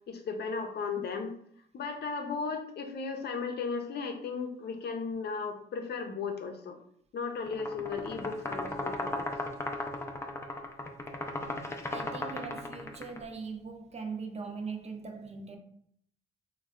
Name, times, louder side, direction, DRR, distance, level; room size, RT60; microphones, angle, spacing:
voice 1, 0.1-1.3 1.7-6.8 7.1-9.3, left 5 dB, 55° left, 0.6 m, -35 dB
sound 1, 7.5-13.2, left 2 dB, 15° left, 0.4 m, -36 dB
voice 2, 11.9-15.6, right 5 dB, 35° right, 0.6 m, -40 dB
3.1 x 2.3 x 3.6 m
cardioid pair, 90°, 20 cm